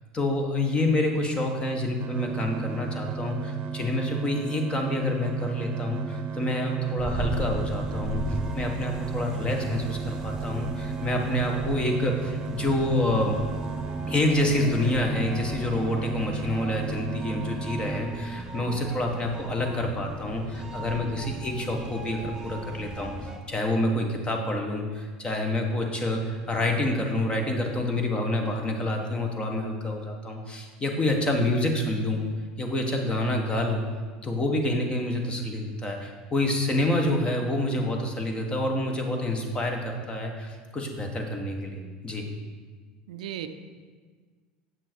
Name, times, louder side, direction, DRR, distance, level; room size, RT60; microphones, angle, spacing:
voice 1, 0.1-13.4 14.1-32.2 32.6-33.8 34.2-42.3, left 1 dB, 25° left, 3 dB, 1.4 m, -27 dB
sound 1, 2.0-18.0, right 5 dB, 50° right, 0.7 m, -35 dB
sound 2, 7.0-23.4, right 1 dB, 15° right, 1.2 m, -37 dB
voice 2, 18.5-18.9 21.0-21.4 43.1-43.5, right 10 dB, 85° right, 9 dB, 0.5 m, -38 dB
7.8 x 6.0 x 4.6 m, 1.5 s
hypercardioid pair, 95°, 4 cm